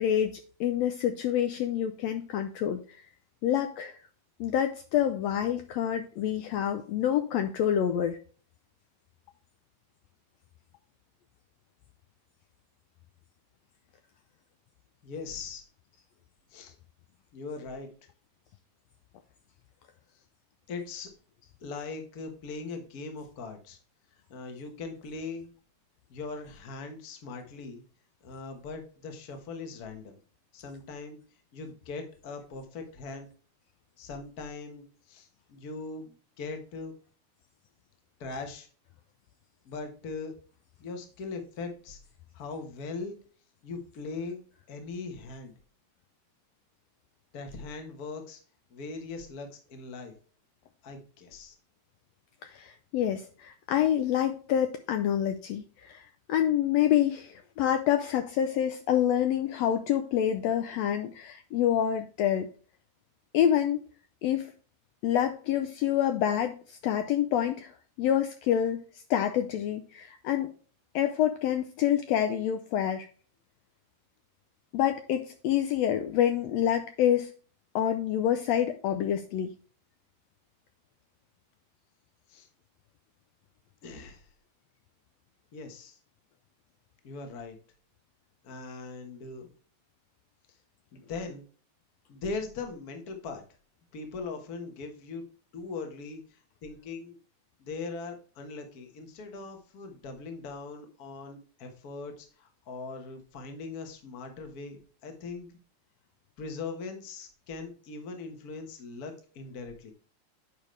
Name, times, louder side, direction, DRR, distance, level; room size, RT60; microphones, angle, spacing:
voice 1, 0.0-2.8 3.4-4.0 4.4-8.2 52.4-56.0 56.3-62.5 63.3-63.8 64.2-64.5 65.0-68.8 69.1-70.5 70.9-73.1 74.7-77.3 77.7-79.5, left 10 dB, 80° left, 7 dB, 1.6 m, -27 dB
voice 2, 15.0-15.6 16.5-16.7 17.3-17.9 20.7-21.1 21.6-23.8 24.3-25.5 26.1-27.8 28.2-30.2 30.5-31.2 31.5-33.3 34.0-36.9 38.2-38.7 39.6-40.3 40.8-42.0 42.3-43.2 43.6-44.4 44.7-45.5 47.3-48.4 48.7-50.1 50.8-51.5 82.3-82.5 83.8-84.3 85.5-86.0 87.0-87.6 88.4-89.5 90.9-91.4 92.1-93.4 93.9-95.2 95.5-97.2 97.6-105.5 106.4-109.9, left 4 dB, 45° left, 5 dB, 1.2 m, -40 dB
9.0 x 5.1 x 3.2 m, 0.40 s
omnidirectional pair, 3.3 m